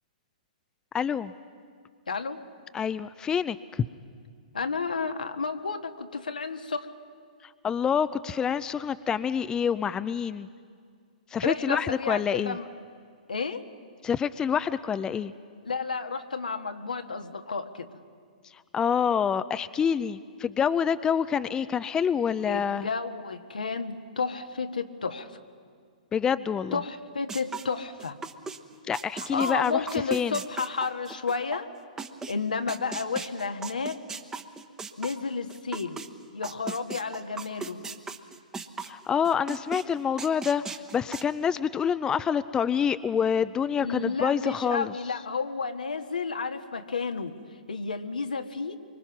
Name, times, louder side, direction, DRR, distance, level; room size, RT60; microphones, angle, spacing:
voice 1, 0.9-1.3 2.7-3.9 7.6-10.5 11.3-12.6 14.0-15.3 18.7-22.9 26.1-26.8 28.9-29.8 30.1-30.4 38.8-44.9, left 7 dB, 15° left, 13 dB, 0.5 m, -27 dB
voice 2, 2.1-2.4 4.5-6.9 11.4-12.6 13.3-13.7 15.6-17.9 22.5-25.3 26.7-28.2 29.1-31.7 32.3-34.0 35.0-36.0 36.3-37.8 43.8-47.3 47.7-48.8, left 4 dB, 85° left, 6 dB, 1.5 m, -31 dB
sound 1, 27.3-28.6 28.9-32.3 32.7-36.1 36.4-39.0 39.2-39.8 40.2-41.2, right 4 dB, 15° right, 1.1 m, -37 dB
24.5 x 24.0 x 6.0 m, 2.1 s
hypercardioid pair, 120°, 4 cm